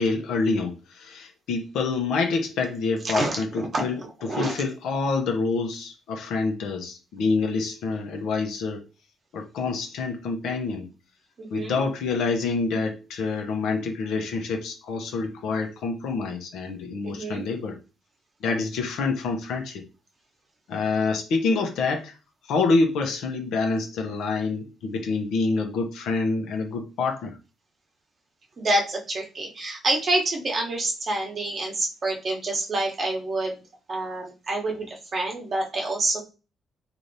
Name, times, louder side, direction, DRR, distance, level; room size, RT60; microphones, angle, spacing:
voice 1, 0.0-8.8 9.3-10.9 11.5-17.8 18.4-19.8 20.7-22.1 22.5-27.4, left 4 dB, 80° left, 3 dB, 0.7 m, -27 dB
voice 2, 3.0-4.6 11.4-11.8 17.0-17.5 28.6-33.6 33.9-36.2, right 2 dB, 45° right, 0 dB, 1.0 m, -27 dB
3.3 x 2.6 x 2.7 m, 0.32 s
cardioid pair, 90°, 0 cm